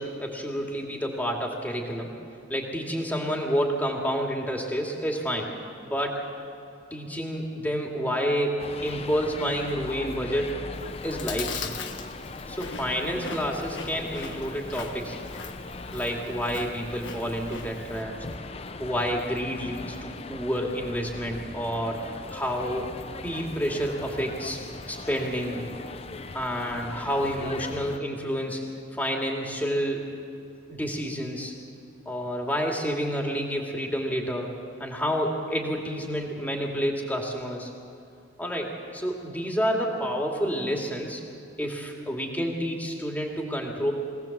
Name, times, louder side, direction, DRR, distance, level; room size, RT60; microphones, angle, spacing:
voice 1, 0.0-2.1 2.5-5.5 5.8-6.2 6.9-10.6 11.0-11.9 12.5-15.2 15.9-18.1 18.8-22.0 22.3-23.0 23.2-24.6 24.9-25.6 26.3-28.7 28.9-30.1 30.7-31.5 32.1-34.5 34.8-37.7 38.4-41.2 41.6-43.9, equal, 10° left, 0 dB, 2.5 m, -29 dB
sound 1, 8.6-28.0, left 3 dB, 30° left, 0.6 m, -40 dB
Chewing mastication, 10.7-18.0, left 5 dB, 75° left, 1.5 m, -40 dB
23.0 x 18.0 x 7.4 m, 2.6 s
head